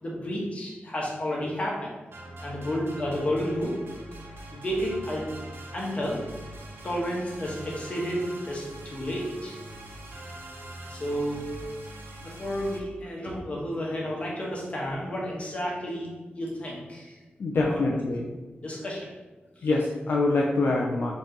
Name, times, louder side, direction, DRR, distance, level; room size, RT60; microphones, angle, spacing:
voice 1, 0.0-1.9 2.4-3.7 4.5-5.3 5.7-6.2 6.8-9.6 10.9-11.5 12.2-16.1 16.3-17.2 17.6-17.8 18.6-19.1 19.6-19.7, equal, 35° left, -4 dB, 1.1 m, -31 dB
sound 1, 2.1-12.8, right 1 dB, 75° right, 0.7 m, -43 dB
voice 2, 17.4-18.2 19.6-21.1, left 2 dB, 65° left, -2 dB, 0.4 m, -25 dB
4.3 x 3.0 x 3.9 m, 1.2 s
wide cardioid pair, 155°, 4 cm